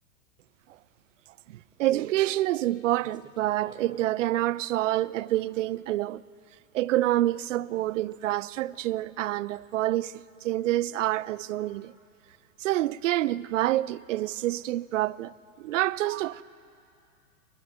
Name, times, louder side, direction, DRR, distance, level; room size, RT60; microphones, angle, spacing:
voice 1, 1.5-6.2 6.7-11.9 12.6-16.4, right 15 dB, 60° right, 0.6 m, -27 dB
sound 1, 1.6-1.8 2.3-2.5 3.0-4.1 4.8-4.9 5.9-6.0 8.0-8.3 8.6-8.8 9.3-9.4, right 4 dB, 10° right, 1.5 m, -52 dB
29.5 x 10.5 x 9.6 m
hypercardioid pair, 110°, 43 cm